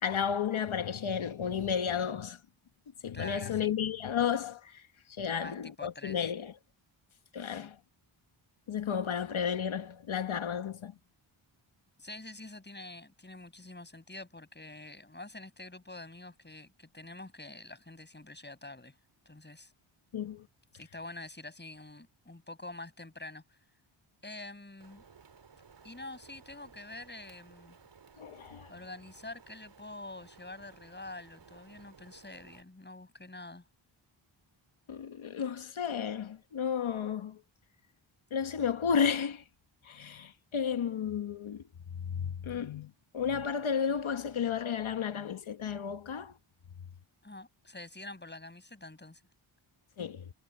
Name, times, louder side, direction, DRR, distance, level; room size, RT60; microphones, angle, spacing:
voice 1, 0.0-2.4 3.0-4.8 5.1-6.5 7.3-7.8 8.7-10.9 20.1-20.5 28.2-28.7 34.9-37.4 38.3-39.4 39.8-41.6 41.9-46.4 50.0-50.3, left 7 dB, 70° left, 1.4 m, -33 dB
voice 2, 3.1-3.7 5.2-6.2 7.6-7.7 12.0-18.9 19.3-19.7 20.7-23.6 24.2-25.0 25.8-27.8 28.7-33.6 47.2-49.2, left 2 dB, 20° left, 6.9 m, -46 dB
Rain, 24.8-32.6, right 5 dB, 55° right, 3.3 m, -58 dB
wide cardioid pair, 95°, 50 cm